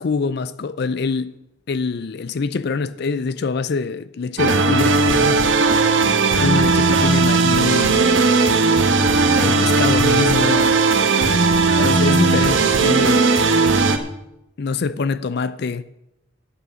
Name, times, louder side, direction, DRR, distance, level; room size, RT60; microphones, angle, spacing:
voice 1, 0.0-1.3 1.7-5.5 6.4-8.1 9.4-10.7 11.7-13.3 14.6-15.8, left 4 dB, 55° left, 0.4 m, -24 dB
sound 1, 4.4-14.0, right 4 dB, 70° right, 1.1 m, -16 dB
9.9 x 8.1 x 7.6 m
head